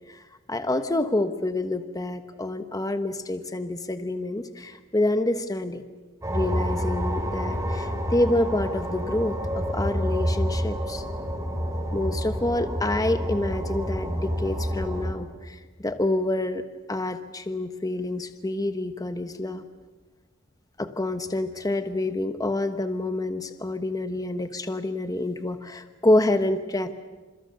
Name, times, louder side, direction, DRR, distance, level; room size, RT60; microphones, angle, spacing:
voice 1, 0.5-5.8 6.3-11.0 11.9-16.6 16.9-19.7 20.8-27.0, left 1 dB, 20° left, 9 dB, 1.1 m, -27 dB
sound 1, 6.2-15.1, equal, 15° right, 5.5 m, -28 dB
29.0 x 27.5 x 6.6 m, 1.3 s
head